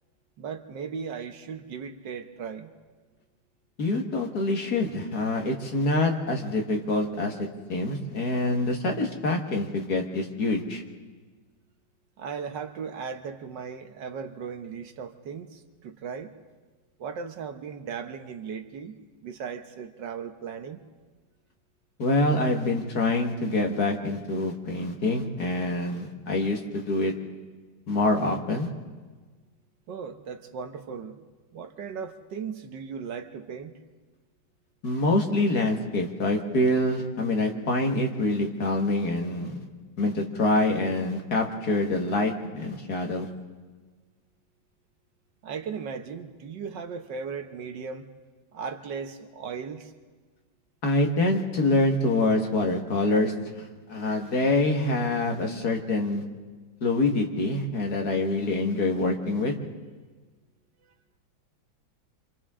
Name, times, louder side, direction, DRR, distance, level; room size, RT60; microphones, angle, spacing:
voice 1, 0.4-2.7 12.2-16.3 17.0-20.8 29.9-31.2 31.5-33.7 45.4-48.1 48.5-49.9 60.8-60.9, right 6 dB, 65° right, 7 dB, 1.6 m, -37 dB
voice 2, 3.8-7.4 7.7-10.8 22.0-27.1 27.9-28.7 34.8-39.5 40.0-43.3 50.8-56.2 56.8-59.6, left 2 dB, 50° left, 2 dB, 2.2 m, -25 dB
27.5 x 26.5 x 3.7 m, 1.4 s
omnidirectional pair, 2.1 m